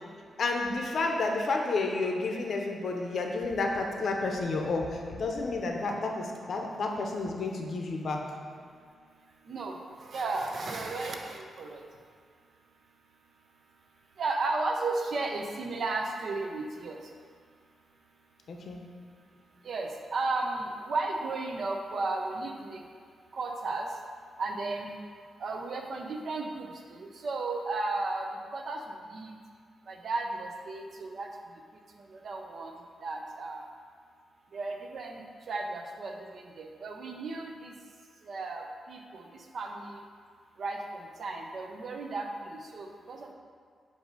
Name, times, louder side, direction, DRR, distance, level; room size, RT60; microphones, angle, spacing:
voice 1, 0.4-8.2 18.5-18.8, left 3 dB, 55° left, 1 dB, 0.7 m, -31 dB
voice 2, 10.1-11.8 14.2-17.0 19.6-22.8 23.3-23.9 24.4-25.0 25.4-28.3 28.5-28.8 29.1-29.3 29.9-31.3 32.1-32.7 33.0-33.6 34.5-35.2 35.5-37.7 38.3-39.3 39.5-40.0 40.6-43.3, right 3 dB, 50° right, 2 dB, 0.6 m, -34 dB
7.7 x 2.7 x 5.2 m, 2.1 s
wide cardioid pair, 150°, 0 cm